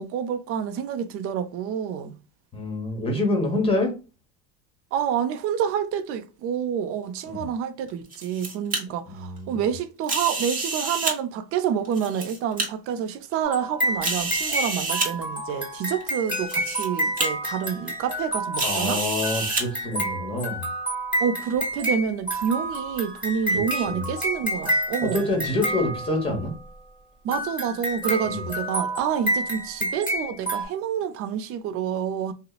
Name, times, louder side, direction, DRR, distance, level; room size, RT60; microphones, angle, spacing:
voice 1, 0.0-2.2 4.9-19.0 21.2-25.3 27.2-32.3, right 8 dB, 40° right, 0.4 m, -28 dB
voice 2, 2.5-3.9 7.3-7.5 9.1-9.7 18.6-20.6 23.5-24.1 25.0-26.5 28.3-28.5, left 2 dB, 15° left, 1.0 m, -27 dB
sound 1, 7.9-8.8 10.0-11.1 11.8-12.7 13.3-13.4 14.0-15.1 16.0-16.1 16.5-16.9 17.2-17.3 18.6-19.6, right 3 dB, 25° right, 1.0 m, -28 dB
sound 2, 13.4-26.5 27.3-30.6, right 1 dB, 5° right, 1.2 m, -29 dB
2.7 x 2.0 x 2.3 m
supercardioid pair, 115°, 36 cm